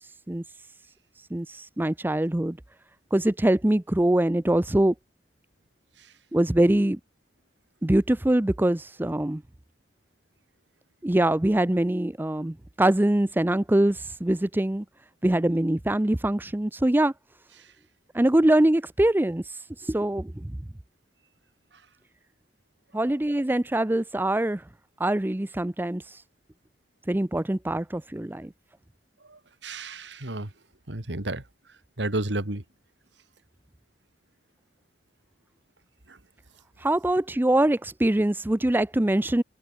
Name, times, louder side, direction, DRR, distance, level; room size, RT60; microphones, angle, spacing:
voice 1, 1.3-2.6 3.1-4.9 6.3-7.0 7.8-9.4 11.0-14.8 15.2-17.1 18.1-19.4 19.9-20.6 22.9-24.6 25.0-26.0 27.1-28.5 36.8-39.4, right 1 dB, 10° right, 0.5 m, -23 dB
voice 2, 29.3-30.5 30.9-31.4 32.0-32.6 36.1-36.2, right 2 dB, 80° right, 2.8 m, -31 dB
head